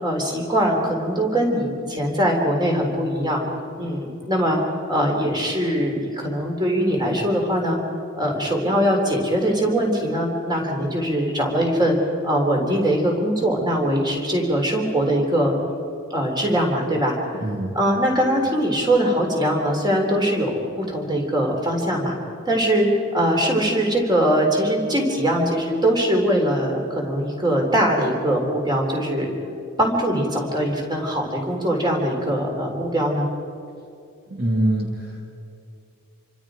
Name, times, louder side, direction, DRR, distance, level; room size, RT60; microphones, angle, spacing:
voice 1, 0.0-3.4 3.7-4.6 4.9-7.8 8.2-12.0 12.2-15.6 16.1-17.4 17.7-20.5 20.8-22.1 22.4-29.3 29.8-33.3, equal, 20° right, 0 dB, 3.7 m, -22 dB
voice 2, 17.4-17.8 34.3-35.2, right 1 dB, 50° right, 0 dB, 2.0 m, -24 dB
27.5 x 24.5 x 5.1 m, 2.6 s
head